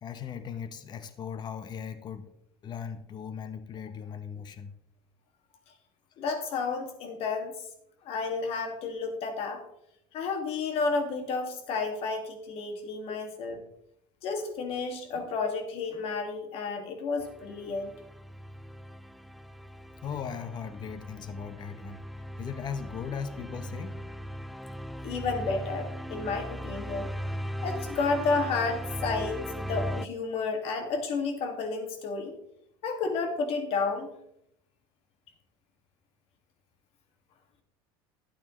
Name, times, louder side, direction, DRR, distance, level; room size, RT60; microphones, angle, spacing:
voice 1, 0.0-2.3 2.6-4.7 13.1-13.2 20.0-24.0, left 7 dB, 35° left, 10 dB, 1.0 m, -38 dB
voice 2, 6.2-7.7 8.0-9.6 10.1-13.6 14.2-17.9 25.0-27.1 27.6-32.3 32.8-34.1, left 4 dB, 55° left, 5 dB, 2.2 m, -31 dB
sound 1, 17.2-30.1, equal, ahead, 0.4 m, -38 dB
12.0 x 8.8 x 3.2 m, 0.75 s
supercardioid pair, 105°, 12 cm